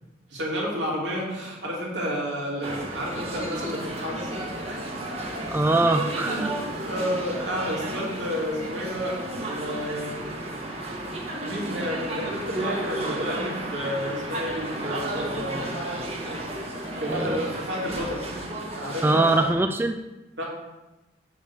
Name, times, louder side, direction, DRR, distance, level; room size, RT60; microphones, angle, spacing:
voice 1, 0.3-4.9 6.2-10.2 11.4-16.1 17.0-18.2 18.7-19.3 20.4-20.5, equal, 75° right, -3 dB, 2.8 m, -31 dB
sound 1, 2.6-19.5, right 1 dB, 35° right, 1.4 m, -33 dB
voice 2, 5.5-6.5 17.1-17.2 19.0-19.9, right 2 dB, 10° right, 7 dB, 0.3 m, -22 dB
6.6 x 6.5 x 7.0 m, 1.0 s
head